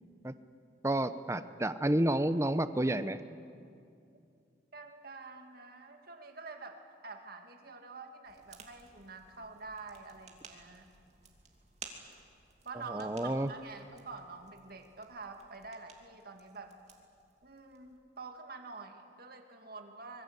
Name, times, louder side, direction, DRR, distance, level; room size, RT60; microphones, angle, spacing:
voice 1, 0.8-3.2 12.9-13.5, right 1 dB, 15° right, 12 dB, 0.8 m, -30 dB
voice 2, 4.7-10.9 12.6-16.8 17.4-20.2, right 4 dB, 55° right, 4 dB, 2.4 m, -47 dB
sound 1, 8.2-18.0, right 5 dB, 40° right, 2.7 m, -56 dB
25.5 x 22.5 x 8.2 m, 2.4 s
head